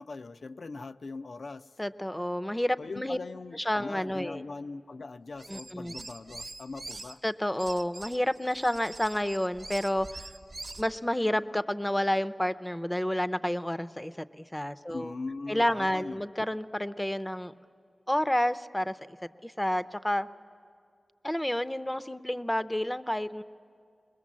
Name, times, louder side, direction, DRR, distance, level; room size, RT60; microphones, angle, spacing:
voice 1, 0.0-1.7 2.8-7.2 14.9-16.2, left 3 dB, 75° left, 11 dB, 0.4 m, -41 dB
voice 2, 1.8-3.2 3.5-4.4 5.5-5.9 7.2-10.3 10.8-15.1 15.5-17.5 18.1-19.2 19.4-20.3 21.2-23.4, left 1 dB, 10° left, 12 dB, 0.5 m, -30 dB
sound 1, 5.3-7.1 7.6-10.9, right 2 dB, 60° right, 0.9 m, -44 dB
21.5 x 21.0 x 7.4 m, 2.3 s
wide cardioid pair, 60°, 0 cm